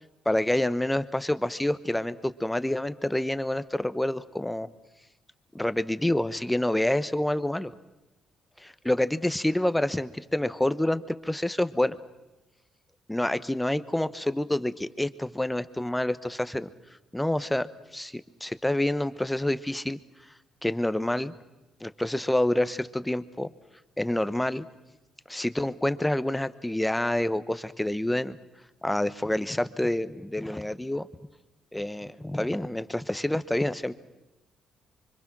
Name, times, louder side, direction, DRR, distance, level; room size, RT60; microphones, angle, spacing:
voice 1, 0.2-4.7 5.5-7.7 8.8-12.0 13.1-16.7 17.1-17.7 17.9-20.0 20.6-21.3 21.8-23.5 24.0-24.7 25.3-28.4 28.8-31.1 31.7-34.0, left 1 dB, 5° left, 14 dB, 1.0 m, -27 dB
25.0 x 25.0 x 6.1 m, 1.0 s
cardioid pair, 90°, 0 cm